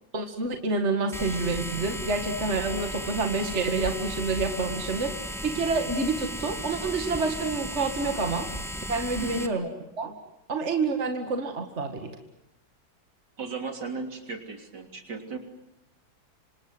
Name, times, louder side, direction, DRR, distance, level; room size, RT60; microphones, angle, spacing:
voice 1, 0.1-5.2 5.4-8.5 8.9-9.7 10.0-10.1 10.5-12.2, right 3 dB, 40° right, 5 dB, 2.2 m, -28 dB
sound 1, 1.1-9.5, equal, ahead, 1.6 m, -35 dB
voice 2, 9.1-9.5 13.4-15.4, right 4 dB, 65° right, 5 dB, 3.8 m, -36 dB
27.5 x 26.5 x 7.9 m, 0.84 s
omnidirectional pair, 2.0 m